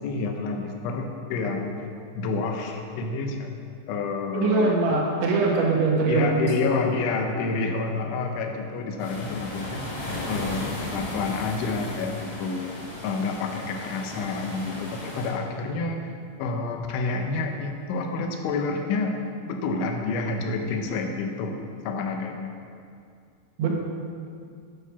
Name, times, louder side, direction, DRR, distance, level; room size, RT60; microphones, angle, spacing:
voice 1, 0.0-1.7 2.2-3.5 3.9-5.7 6.1-9.9 10.3-12.7 13.0-16.1 16.4-19.2 19.4-21.6 21.8-22.5, left 4 dB, 85° left, 3 dB, 3.4 m, -29 dB
voice 2, 4.3-6.8 23.6-23.7, right 4 dB, 80° right, -1 dB, 3.9 m, -22 dB
sound 1, 9.0-15.3, left 1 dB, 45° left, 3.4 m, -35 dB
10.0 x 9.0 x 5.9 m, 2.4 s
omnidirectional pair, 5.3 m